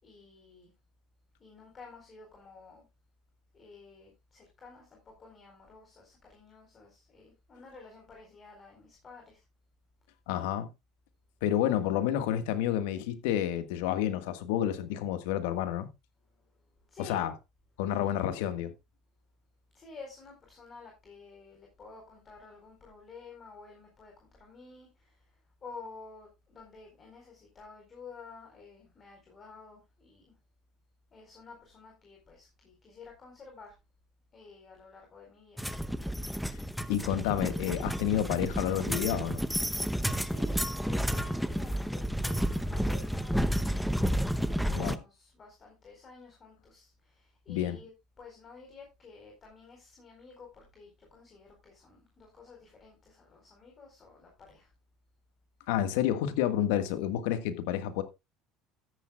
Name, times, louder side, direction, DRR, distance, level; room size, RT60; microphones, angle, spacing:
voice 1, 0.0-0.7 1.4-2.9 3.5-9.4 16.3-17.2 19.7-30.4 31.1-33.8 34.3-35.6 40.2-42.0 42.2-43.9 44.3-47.9 48.2-54.7, left 4 dB, 35° left, 4.4 m, -51 dB
voice 2, 10.3-10.7 11.4-15.9 17.0-17.3 17.8-18.7 36.5-36.6 36.9-39.4 44.7-45.0 47.5-47.8 55.7-58.0, left 11 dB, 80° left, 1.6 m, -29 dB
sound 1, 35.6-45.0, equal, ahead, 0.8 m, -31 dB
13.0 x 10.0 x 2.3 m
supercardioid pair, 95°, 0 cm